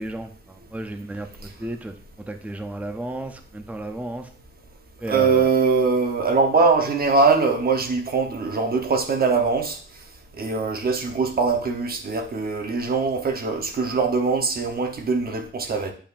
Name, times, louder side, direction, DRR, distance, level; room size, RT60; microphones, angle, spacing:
voice 1, 0.0-4.3 5.0-5.5, right 1 dB, 5° right, 7 dB, 0.5 m, -33 dB
voice 2, 5.0-9.8 10.4-15.9, right 4 dB, 50° right, 5 dB, 0.9 m, -22 dB
8.6 x 5.5 x 2.5 m, 0.43 s
wide cardioid pair, 150°, 20 cm